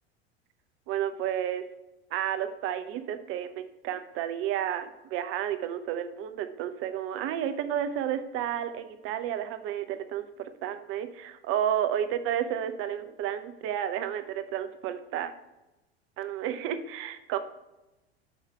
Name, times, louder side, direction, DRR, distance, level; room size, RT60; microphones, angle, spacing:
voice 1, 0.9-1.6 2.1-15.3 16.2-17.4, right 10 dB, 45° right, 10 dB, 0.7 m, -31 dB
6.4 x 5.0 x 4.3 m, 1.0 s
figure-of-eight pair, 75°, 32 cm